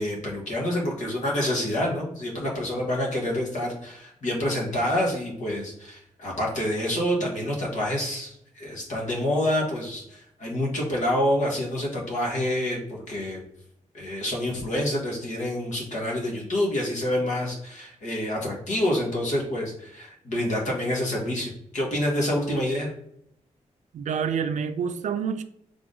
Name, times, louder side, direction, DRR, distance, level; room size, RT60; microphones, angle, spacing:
voice 1, 0.0-13.4 13.9-22.9, left 1 dB, 75° left, 1.5 m, -27 dB
voice 2, 23.9-25.4, right 7 dB, 70° right, 0.4 m, -27 dB
3.8 x 3.6 x 3.8 m
wide cardioid pair, 150°, 13 cm